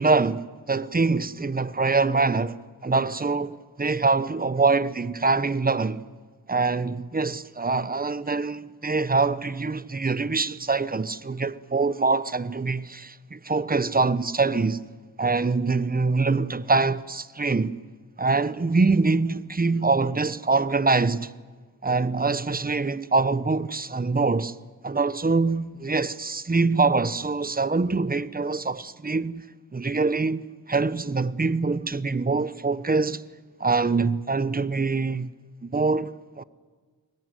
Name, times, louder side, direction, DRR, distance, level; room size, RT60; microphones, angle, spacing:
voice 1, 0.0-6.0 6.5-14.8 15.2-17.7 18.2-21.3 21.8-24.5 24.8-29.5 29.7-33.2 33.6-35.3 35.6-36.4, right 3 dB, 25° right, 1.0 m, -24 dB
23.0 x 19.0 x 9.8 m
cardioid pair, 50°, 36 cm